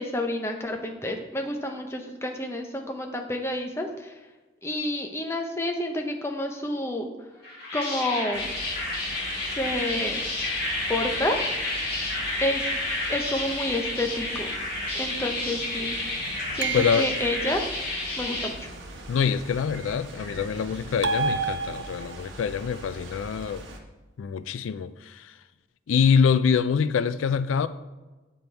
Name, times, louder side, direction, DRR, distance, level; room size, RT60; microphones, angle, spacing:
voice 1, 0.0-4.1 4.6-7.1 7.7-8.5 9.6-10.2 10.9-11.4 12.4-12.7 13.1-14.5 14.9-16.0 16.5-17.6 18.2-18.7, left 1 dB, 15° left, 0.7 m, -29 dB
sound 1, 7.4-18.5, left 2 dB, 50° left, 2.0 m, -30 dB
sound 2, 8.3-23.8, right 1 dB, 80° right, 1.1 m, -42 dB
sound 3, 16.6-17.5 21.0-22.3, right 4 dB, 65° right, 0.5 m, -29 dB
voice 2, 16.7-17.1 19.1-23.6 24.2-25.4 25.9-27.7, left 6 dB, 85° left, 0.3 m, -25 dB
8.2 x 5.2 x 4.4 m
head